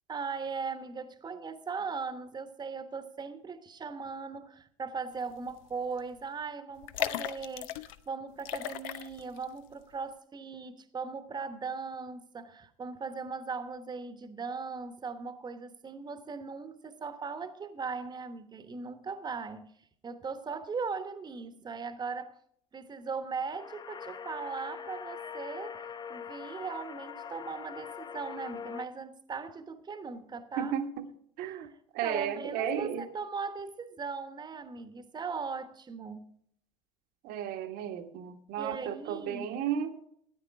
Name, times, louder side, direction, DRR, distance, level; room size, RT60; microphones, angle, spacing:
voice 1, 0.1-19.7 20.0-22.4 22.7-30.7 31.5-31.8 32.0-36.4 38.6-39.5, right 5 dB, 25° right, 1.1 m, -39 dB
sound 1, 5.5-5.7 6.0-6.1 6.8-8.0 8.4-9.4 9.8-9.9, left 13 dB, 70° left, 0.7 m, -36 dB
sound 2, 23.5-28.9, left 7 dB, 25° left, 0.6 m, -43 dB
voice 2, 30.6-31.1 31.4-33.1 37.2-40.0, right 8 dB, 60° right, 1.3 m, -34 dB
13.5 x 9.1 x 4.7 m
hypercardioid pair, 80°, 18 cm